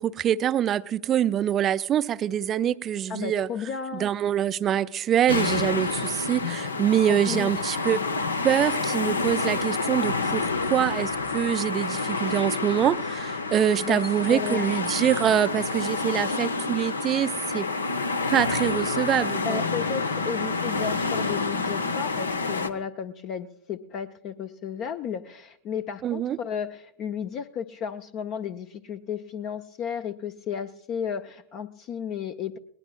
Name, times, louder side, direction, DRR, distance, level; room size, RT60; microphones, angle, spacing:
voice 1, 0.0-3.5 3.9-8.0 8.4-17.6 18.3-19.6 26.0-26.4, right 10 dB, 30° right, 0.5 m, -25 dB
voice 2, 3.1-4.1 7.1-7.5 13.8-14.0 14.3-14.7 19.3-32.6, left 7 dB, 35° left, 0.6 m, -33 dB
sound 1, 5.3-22.7, left 3 dB, 75° left, 0.8 m, -28 dB
21.0 x 19.0 x 2.3 m
figure-of-eight pair, 90°, 0 cm